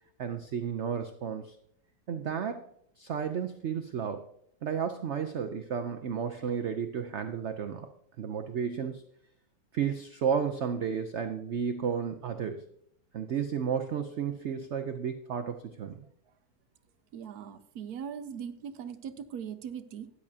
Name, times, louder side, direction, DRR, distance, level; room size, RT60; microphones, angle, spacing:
voice 1, 0.2-1.6 2.1-2.6 3.0-4.2 4.6-7.9 8.2-9.0 9.7-12.7 13.1-16.0, right 7 dB, 85° right, 8 dB, 0.6 m, -32 dB
voice 2, 17.1-20.1, right 8 dB, 65° right, 11 dB, 1.1 m, -40 dB
13.5 x 9.9 x 2.8 m, 0.70 s
omnidirectional pair, 2.0 m